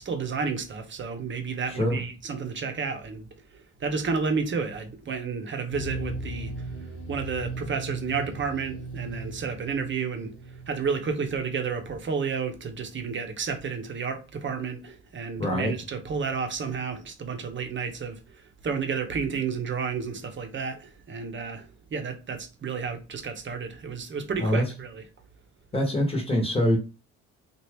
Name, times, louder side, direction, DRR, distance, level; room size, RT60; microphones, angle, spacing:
voice 1, 0.0-3.3 3.5-6.7 7.1-10.4 10.7-25.0, right 5 dB, 40° right, 0.8 m, -31 dB
voice 2, 1.7-2.0 15.4-15.7 24.4-24.6 25.7-26.8, equal, 20° left, 1.1 m, -24 dB
sound 1, 5.7-11.5 11.7-12.0, right 2 dB, 45° left, 1.3 m, -37 dB
2.8 x 2.4 x 3.3 m
cardioid pair, 90°, 30 cm